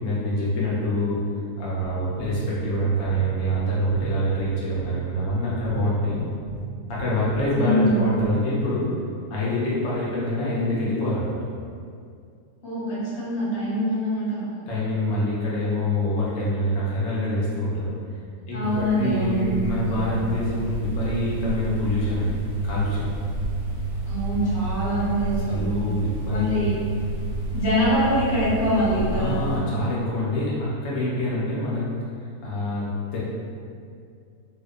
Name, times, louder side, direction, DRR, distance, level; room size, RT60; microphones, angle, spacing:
voice 1, 0.0-1.2 1.6-6.2 6.9-8.9 9.3-11.4 14.7-17.9 18.5-23.0 25.5-26.7 29.1-31.9 32.4-33.2, left 1 dB, 70° left, -7 dB, 0.7 m, -25 dB
sound 1, 1.8-8.7, right 4 dB, 60° right, 0.7 m, -38 dB
voice 2, 7.6-8.0 12.6-14.5 18.5-19.9 24.1-25.7 26.3-26.7 27.5-29.4, equal, 50° left, -11 dB, 1.0 m, -24 dB
sound 2, 18.6-29.6, right 2 dB, 85° right, 1.2 m, -29 dB
2.7 x 2.0 x 2.3 m, 2.3 s
omnidirectional pair, 1.8 m